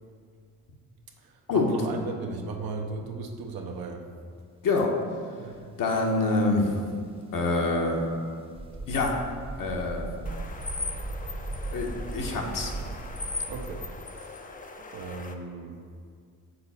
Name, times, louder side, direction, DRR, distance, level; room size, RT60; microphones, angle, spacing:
voice 1, 1.2-4.1 5.4-5.6 13.5-14.4 14.8-15.8, right 4 dB, 65° right, 3 dB, 0.9 m, -37 dB
voice 2, 4.6-5.0 5.8-6.8 7.3-8.1 8.9-9.2 9.6-10.1 11.7-12.7, left 3 dB, 60° left, 1 dB, 1.1 m, -26 dB
sound 1, 8.6-14.0, right 2 dB, 15° right, 0.9 m, -37 dB
sound 2, 10.3-15.3, left 3 dB, 20° left, 0.6 m, -39 dB
6.9 x 3.9 x 4.2 m, 2.1 s
supercardioid pair, 55°, 38 cm